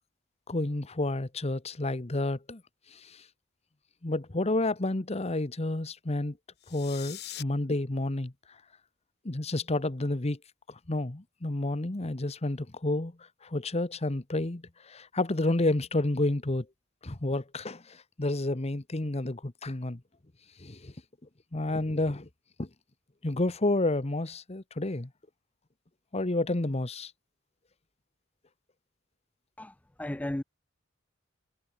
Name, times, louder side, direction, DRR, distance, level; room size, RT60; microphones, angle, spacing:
voice 1, 0.5-2.6 2.9-3.2 4.0-6.4 6.7-8.3 9.2-10.4 10.7-13.1 13.4-16.7 17.0-20.0 20.6-20.9 21.5-22.3 22.6-22.7 23.2-25.1 26.1-27.1, left 2 dB, 30° left, 1.1 m, -30 dB
sound 1, 6.6-7.4, left 13 dB, 55° left, 1.3 m, -42 dB
voice 2, 29.6-30.4, left 1 dB, 5° left, 0.4 m, -35 dB
head